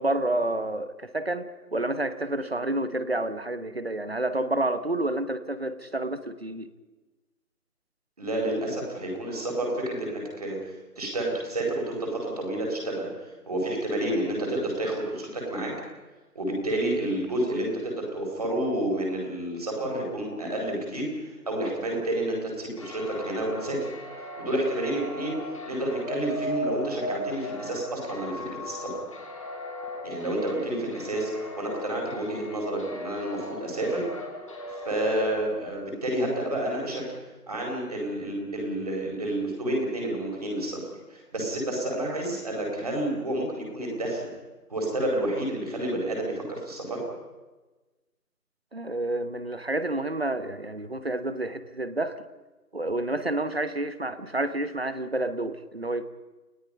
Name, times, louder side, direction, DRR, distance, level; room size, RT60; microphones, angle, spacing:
voice 1, 0.0-6.7 48.7-52.2 52.7-56.1, right 1 dB, 40° right, 13 dB, 1.1 m, -29 dB
voice 2, 8.2-10.6 11.0-15.7 16.3-23.8 24.4-25.4 25.7-29.0 30.0-34.0 34.8-37.0 37.5-40.8 41.1-44.3 44.7-47.0, right 1 dB, 25° right, -1 dB, 4.7 m, -30 dB
sound 1, 22.8-35.7, left 1 dB, 20° left, 2.7 m, -37 dB
29.5 x 17.0 x 5.5 m, 1.2 s
figure-of-eight pair, 170°, 47 cm